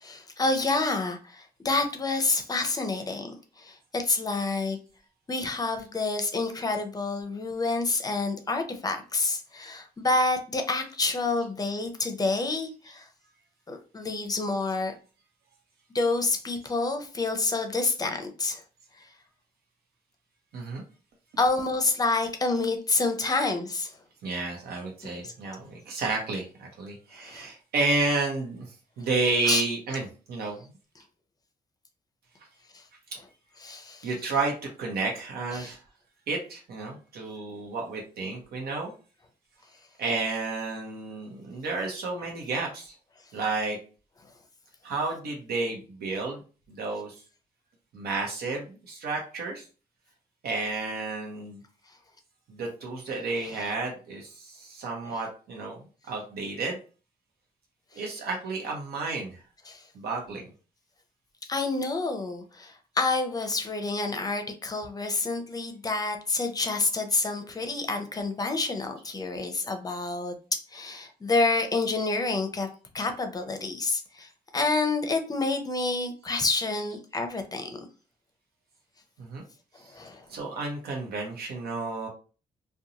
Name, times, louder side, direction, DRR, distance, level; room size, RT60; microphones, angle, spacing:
voice 1, 0.0-4.8 5.3-13.1 13.7-14.9 15.9-18.6 19.0-19.1 21.4-23.9 25.2-25.3 27.2-27.5 29.5-29.6 32.7-32.8 33.6-34.1 35.5-35.7 53.5-53.6 55.0-55.2 59.7-59.9 61.5-72.7 72.9-77.8 79.9-80.3, left 3 dB, 25° left, 6 dB, 0.6 m, -28 dB
voice 2, 24.2-30.6 34.0-35.8 36.3-38.9 40.0-42.9 43.3-43.8 44.8-46.4 46.7-47.2 47.9-49.7 50.4-51.6 52.5-56.8 57.9-59.4 59.9-60.4 79.2-79.4 79.8-79.9 80.3-82.1, right 3 dB, 85° right, 0 dB, 0.8 m, -31 dB
2.5 x 2.2 x 2.8 m, 0.36 s
cardioid pair, 105°, 16 cm